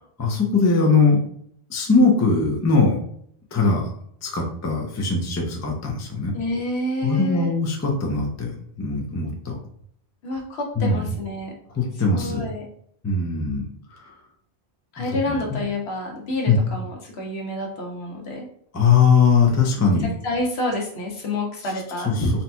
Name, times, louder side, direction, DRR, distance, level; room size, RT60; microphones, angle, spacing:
voice 1, 0.2-1.2 1.7-3.0 3.5-3.9 4.2-6.3 7.0-8.5 8.8-9.6 10.8-11.1 11.7-12.4 13.0-13.6 13.9-14.1 15.0-15.4 16.5-16.6 18.7-20.1, left 4 dB, 25° left, 0 dB, 0.4 m, -20 dB
voice 2, 6.3-7.5 10.2-11.5 12.2-12.6 14.9-18.5 20.2-22.3, left 2 dB, 75° left, 0 dB, 1.1 m, -28 dB
3.9 x 2.8 x 2.2 m, 0.65 s
omnidirectional pair, 1.1 m